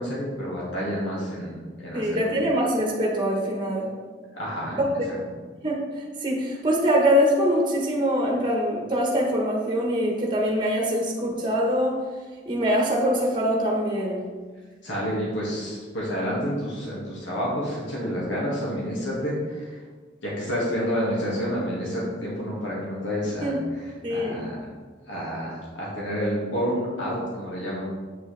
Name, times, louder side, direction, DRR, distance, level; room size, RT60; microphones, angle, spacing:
voice 1, 0.0-2.4 4.3-4.8 14.8-19.8 20.2-24.6 25.1-27.8, equal, 85° left, -5 dB, 1.9 m, -29 dB
voice 2, 1.9-3.9 4.7-5.0 5.6-5.8 6.2-12.0 12.4-14.2 23.4-23.6 24.0-24.4, equal, 25° right, -1 dB, 1.1 m, -23 dB
7.8 x 6.4 x 3.3 m, 1.4 s
head